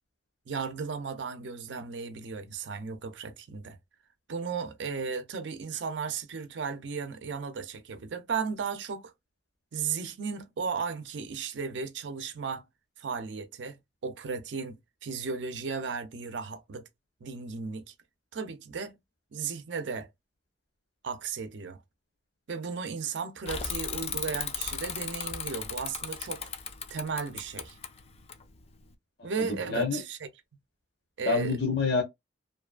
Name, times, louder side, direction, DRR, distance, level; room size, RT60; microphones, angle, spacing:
voice 1, 0.5-3.8 4.3-9.1 9.7-12.6 13.0-14.8 15.0-16.8 17.2-17.9 18.3-19.0 19.3-20.1 21.0-21.8 22.5-26.5 26.9-27.8 29.2-30.2 31.2-31.6, right 5 dB, 75° right, 0.5 m, -35 dB
Bicycle / Mechanisms, 23.5-28.9, left 7 dB, 35° left, 0.4 m, -36 dB
voice 2, 29.2-30.0 31.3-32.0, left 4 dB, 65° left, 0.8 m, -28 dB
2.6 x 2.3 x 2.3 m
head